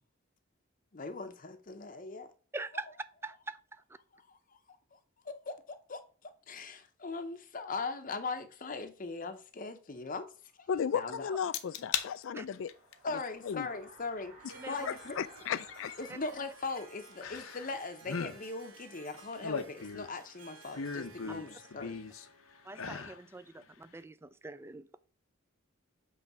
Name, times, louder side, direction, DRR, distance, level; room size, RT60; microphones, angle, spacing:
voice 1, 0.9-2.3 4.1-4.4 4.9-5.0 5.2-10.3 10.6-10.7 10.9-11.3 13.0-14.3 14.6-15.2 16.0-22.0, left 3 dB, 40° left, 0.7 m, -40 dB
voice 2, 2.5-2.9 3.2-3.8 12.3-12.5 14.5-14.8 16.1-16.2 21.3-21.4 22.6-24.9, right 2 dB, 10° right, 0.3 m, -43 dB
sound 1, 10.4-19.1, right 2 dB, 30° right, 2.1 m, -58 dB
voice 3, 10.7-12.7 13.4-13.7 14.9-16.0, left 7 dB, 65° left, 0.3 m, -35 dB
sound 2, 11.5-12.1 12.5-12.9 14.5-14.6 17.2-17.8 18.0-18.4 19.1-20.2 20.7-22.3 22.7-23.2 23.6-23.7, left 6 dB, 85° left, 0.8 m, -37 dB
Harp, 14.4-23.1, right 4 dB, 75° right, 1.2 m, -57 dB
8.1 x 3.2 x 5.9 m
head